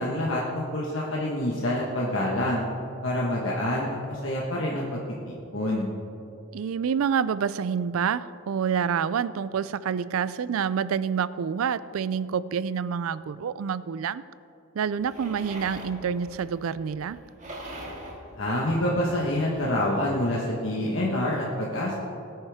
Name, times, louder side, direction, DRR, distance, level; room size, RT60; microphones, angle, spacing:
voice 1, 0.0-2.6 3.0-5.0 5.3-5.9 18.4-21.9, left 1 dB, 65° left, -4 dB, 1.4 m, -27 dB
voice 2, 6.5-14.2 14.7-17.2, right 7 dB, 80° right, 17 dB, 0.4 m, -27 dB
sound 1, 15.0-19.8, right 1 dB, 35° right, 1.9 m, -43 dB
20.5 x 9.4 x 3.6 m, 2.8 s
head